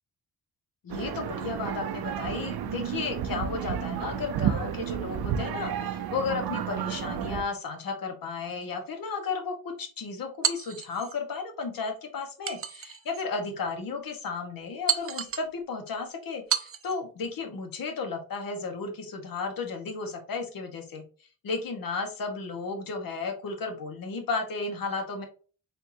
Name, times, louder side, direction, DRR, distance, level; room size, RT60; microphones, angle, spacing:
voice 1, 0.8-21.0 21.4-25.2, left 4 dB, 65° left, 4 dB, 1.2 m, -34 dB
sound 1, 0.9-7.4, right 9 dB, 85° right, 0.6 m, -31 dB
sound 2, 10.4-11.2 12.5-13.3 13.8-13.9 14.9-15.5 16.5-17.0, right 8 dB, 40° right, 0.5 m, -31 dB
4.4 x 3.6 x 2.6 m, 0.38 s
wide cardioid pair, 120°, 37 cm